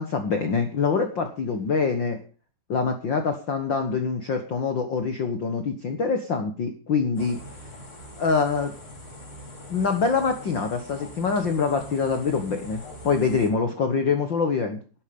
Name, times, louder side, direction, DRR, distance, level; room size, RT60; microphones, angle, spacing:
voice 1, 0.0-2.2 2.7-7.4 8.2-8.7 9.7-14.8, left 5 dB, 80° left, 6 dB, 1.0 m, -25 dB
sound 1, 7.2-13.5, left 1 dB, 35° left, 5.2 m, -43 dB
13.0 x 12.5 x 5.4 m, 0.38 s
omnidirectional pair, 4.4 m